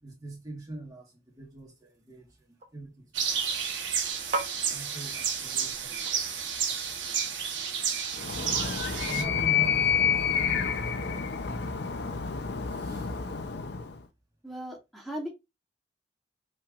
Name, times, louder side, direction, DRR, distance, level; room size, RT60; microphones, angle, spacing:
voice 1, 0.0-3.6 4.7-6.8 7.1-7.2 9.0-12.2 12.7-13.2, right 2 dB, 20° right, 1.5 m, -44 dB
sound 1, 1.3-7.1, right 3 dB, 40° right, 0.7 m, -41 dB
sound 2, 3.1-9.2, right 7 dB, 85° right, 1.0 m, -31 dB
Animal, 8.1-14.0, left 7 dB, 65° left, 0.6 m, -29 dB
voice 2, 14.4-15.3, equal, ahead, 1.1 m, -37 dB
5.7 x 3.2 x 2.5 m
head